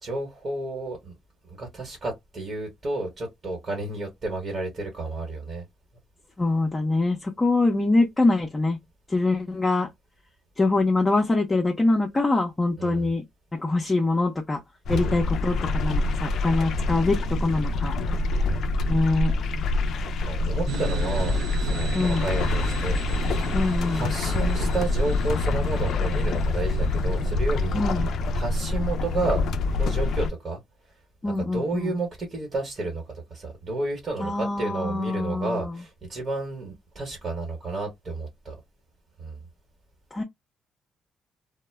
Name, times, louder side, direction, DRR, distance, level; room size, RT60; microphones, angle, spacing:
voice 1, 0.0-1.1 1.5-5.6 12.8-13.1 15.0-15.3 16.6-17.0 18.4-18.6 20.2-23.0 23.4-23.6 23.9-27.8 28.3-29.4 29.7-30.6 31.4-38.5 39.2-39.4, right 2 dB, 40° right, 1.2 m, -31 dB
voice 2, 6.4-8.8 9.1-9.9 10.6-13.2 13.6-14.6 14.9-17.9 18.9-19.3 21.9-22.3 23.5-24.1 27.7-28.1 31.2-31.9 34.2-35.8 40.1-40.2, left 2 dB, 20° left, 0.6 m, -24 dB
sound 1, 14.9-30.3, left 2 dB, 70° left, 0.3 m, -26 dB
sound 2, 20.7-27.2, right 6 dB, 80° right, 0.5 m, -38 dB
2.1 x 2.1 x 3.2 m
cardioid pair, 90°, 0 cm